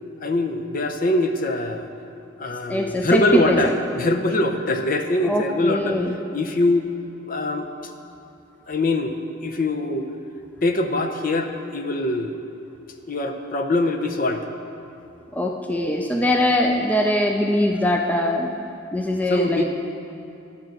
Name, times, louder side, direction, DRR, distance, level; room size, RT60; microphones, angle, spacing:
voice 1, 0.2-1.9 2.4-6.0 6.3-6.9 7.3-7.7 8.7-9.2 9.4-10.1 10.6-12.4 13.1-14.5 19.3-19.6, left 2 dB, 45° left, 5 dB, 0.7 m, -23 dB
voice 2, 2.7-3.7 5.2-6.1 15.3-18.5 18.9-19.6, left 1 dB, 10° left, 2 dB, 0.4 m, -22 dB
11.5 x 6.0 x 7.7 m, 2.7 s
head